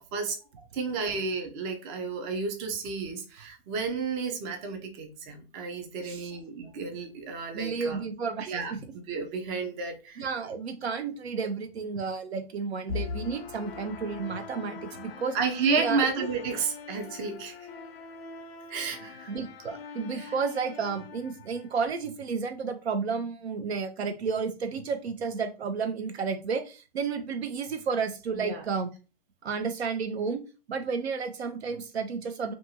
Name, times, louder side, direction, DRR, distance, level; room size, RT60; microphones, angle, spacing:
voice 1, 0.1-8.0 8.5-10.3 15.3-17.6 18.7-19.3 20.1-20.3 28.3-28.6, right 4 dB, 25° right, 4 dB, 0.4 m, -32 dB
voice 2, 6.0-6.3 7.5-8.8 10.2-15.4 15.8-16.3 19.3-28.9 29.4-30.4 30.7-32.5, right 5 dB, 85° right, 9 dB, 0.7 m, -32 dB
sound 1, 12.9-21.9, left 5 dB, 70° left, 0.5 m, -42 dB
2.6 x 2.3 x 2.8 m, 0.32 s
hypercardioid pair, 125°, 31 cm